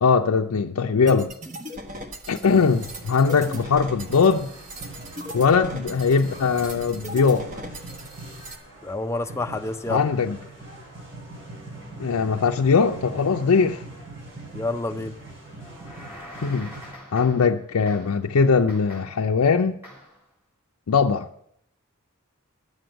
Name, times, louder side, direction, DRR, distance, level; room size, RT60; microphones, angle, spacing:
voice 1, 0.0-1.3 2.3-4.5 5.3-7.5 9.9-10.4 12.0-13.8 16.4-16.7 17.1-19.8 20.9-21.3, left 5 dB, 85° left, 0.5 m, -20 dB
sound 1, 1.1-8.6, equal, 35° right, 1.2 m, -39 dB
sound 2, 2.4-16.9, right 2 dB, 55° right, 5.1 m, -42 dB
voice 2, 8.8-10.1 14.5-15.2, left 2 dB, 10° left, 0.5 m, -28 dB
sound 3, 15.6-17.6 17.9-18.3 18.7-19.3 19.8-20.2, left 1 dB, 10° right, 3.7 m, -44 dB
11.0 x 7.8 x 7.9 m
head